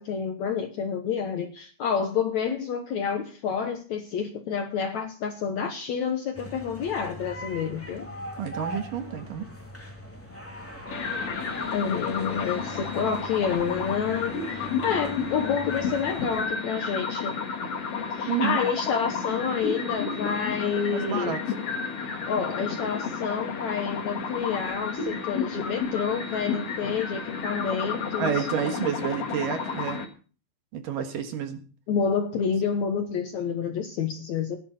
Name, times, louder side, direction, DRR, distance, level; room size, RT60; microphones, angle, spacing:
voice 1, 0.0-8.1 11.7-17.4 18.2-21.4 22.3-28.5 31.9-34.6, left 6 dB, 65° left, 6 dB, 1.9 m, -29 dB
sound 1, 6.3-16.4, equal, 5° left, 2.2 m, -41 dB
voice 2, 8.4-9.5 18.3-18.6 20.9-21.4 28.2-30.0 30.7-31.6, right 8 dB, 65° right, 6 dB, 2.9 m, -29 dB
sound 2, 10.9-30.0, left 5 dB, 50° left, 2.4 m, -32 dB
16.0 x 11.0 x 4.2 m, 0.38 s
omnidirectional pair, 4.4 m